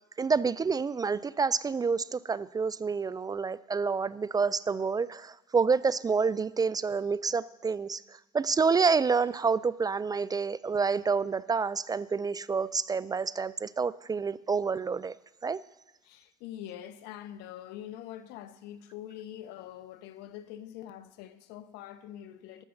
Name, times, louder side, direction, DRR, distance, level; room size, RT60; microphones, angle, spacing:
voice 1, 0.2-15.1 15.4-15.6, right 5 dB, 20° right, 0.3 m, -28 dB
voice 2, 16.0-22.6, left 11 dB, 70° left, 0.7 m, -44 dB
12.5 x 6.9 x 6.4 m
hypercardioid pair, 65°, 18 cm